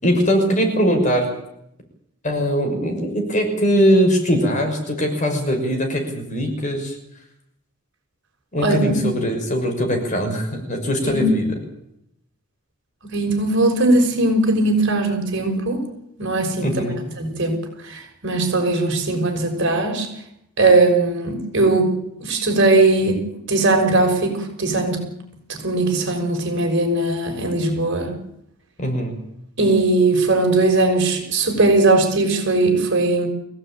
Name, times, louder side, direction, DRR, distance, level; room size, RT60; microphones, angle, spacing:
voice 1, 0.0-1.3 2.2-6.9 8.5-11.4 16.6-17.0 28.8-29.2, equal, 35° left, 4 dB, 6.1 m, -21 dB
voice 2, 8.6-8.9 11.0-11.3 13.1-15.9 16.2-16.8 17.2-17.6 17.9-20.1 20.6-21.9 22.2-25.0 25.5-28.1 29.6-33.3, right 2 dB, 55° right, 3 dB, 6.2 m, -19 dB
24.5 x 17.0 x 9.2 m, 0.78 s
head